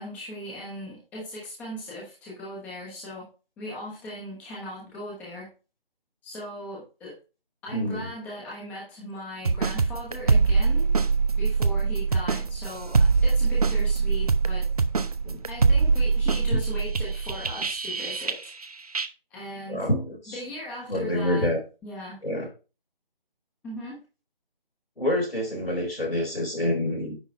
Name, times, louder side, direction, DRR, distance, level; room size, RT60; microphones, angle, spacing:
voice 1, 0.0-3.2 3.6-5.5 6.2-7.2 7.6-10.9 11.3-14.6 15.5-18.5 19.3-19.9 20.3-21.5 21.8-22.2 23.6-24.0, equal, 5° left, -5 dB, 1.2 m, -38 dB
voice 2, 7.7-8.1 15.2-15.4 19.7-20.4 20.9-21.6 22.2-22.5 25.0-27.2, left 1 dB, 85° left, 0 dB, 3.9 m, -27 dB
sound 1, 9.5-18.7 18.9-19.1, right 4 dB, 40° right, 0.5 m, -23 dB
9.8 x 3.7 x 4.4 m, 0.33 s
figure-of-eight pair, 155°, 29 cm